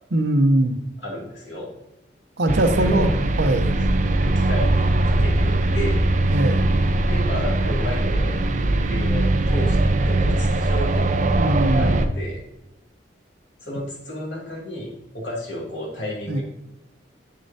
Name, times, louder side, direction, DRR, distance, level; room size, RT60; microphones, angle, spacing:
voice 1, 0.1-0.8 2.4-3.1 3.4-3.7 6.3-6.7 11.4-12.0 16.3-16.4, right 1 dB, 75° right, 7 dB, 0.8 m, -21 dB
voice 2, 1.0-1.7 2.7-3.1 4.2-6.1 7.0-8.3 8.9-11.1 11.8-12.4 13.6-16.4, left 1 dB, 90° left, -3 dB, 2.5 m, -32 dB
sound 1, 2.5-12.1, right 2 dB, 45° right, 0.5 m, -20 dB
7.9 x 6.6 x 2.8 m, 0.88 s
head